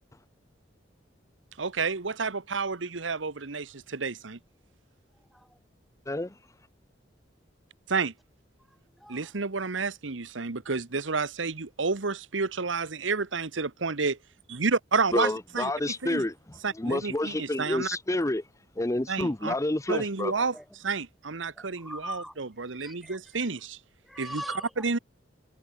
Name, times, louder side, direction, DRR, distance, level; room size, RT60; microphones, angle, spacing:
voice 1, 1.6-4.4 7.9-8.1 9.1-14.2 14.5-15.7 16.0-16.2 16.6-17.9 19.1-19.5 19.9-20.5 20.8-23.8 24.2-24.4 24.8-25.0, right 4 dB, 85° right, 1.2 m, -30 dB
voice 2, 5.2-5.6 8.7-9.3 20.3-20.9 21.5-22.4 22.7-23.5 24.0-24.9, equal, ahead, 1.8 m, -43 dB
voice 3, 15.1-16.3 16.8-18.4 18.8-20.3, left 1 dB, 15° left, 0.8 m, -29 dB
head